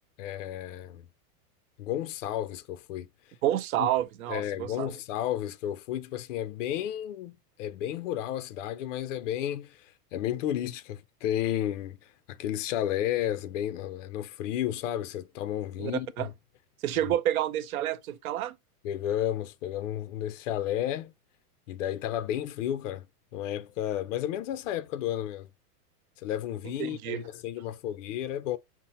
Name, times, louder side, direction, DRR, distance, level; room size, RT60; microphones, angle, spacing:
voice 1, 0.2-1.1 1.8-3.1 3.8-3.9 4.3-16.3 18.8-21.1 21.7-23.1 23.3-25.5 26.2-28.6, left 11 dB, 55° left, 0.5 m, -32 dB
voice 2, 3.4-4.9 15.8-15.9 16.2-16.3 16.8-18.5 26.8-27.2, right 12 dB, 65° right, 0.6 m, -29 dB
5.9 x 2.1 x 4.0 m
supercardioid pair, 165°, 46 cm